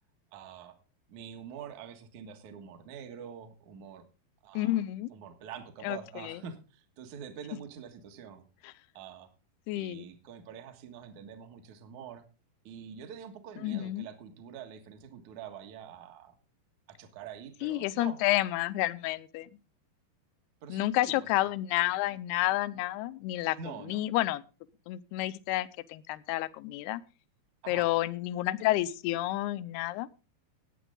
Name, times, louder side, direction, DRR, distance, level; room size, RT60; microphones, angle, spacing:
voice 1, 0.3-0.8 1.1-4.0 4.4-4.8 5.1-8.5 8.9-9.3 9.8-12.2 12.6-16.3 16.9-18.2 20.6-21.3 23.6-24.0 27.6-27.9, right 7 dB, 55° right, 6 dB, 2.6 m, -46 dB
voice 2, 4.5-5.1 5.8-6.0 6.2-6.4 8.6-8.7 9.7-10.1 13.6-14.1 17.6-19.5 20.7-23.6 23.8-24.4 24.9-27.0 27.7-30.1, left 16 dB, 85° left, 15 dB, 2.7 m, -30 dB
17.5 x 9.2 x 3.8 m, 0.33 s
omnidirectional pair, 4.5 m